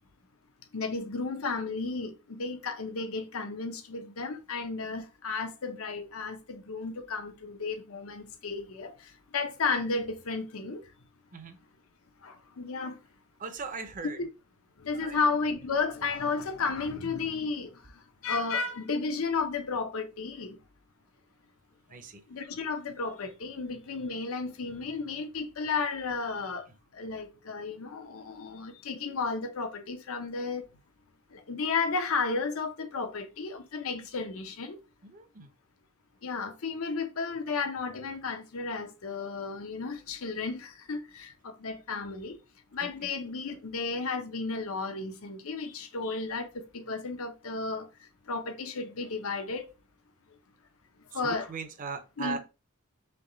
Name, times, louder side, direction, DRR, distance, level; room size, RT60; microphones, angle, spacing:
voice 1, 0.7-8.9 9.3-10.8 12.2-13.0 14.2-14.3 14.8-17.7 18.2-20.6 22.3-26.6 27.0-30.6 31.3-34.8 36.2-42.4 42.7-46.5 46.7-47.9 48.3-49.7 51.1-51.4 52.2-52.4, left 4 dB, 75° left, 0.7 m, -33 dB
voice 2, 13.4-14.3 14.9-15.2 21.9-22.2 35.0-35.5 42.8-43.1 51.1-52.4, right 5 dB, 40° right, 0.7 m, -39 dB
3.4 x 3.1 x 3.8 m
head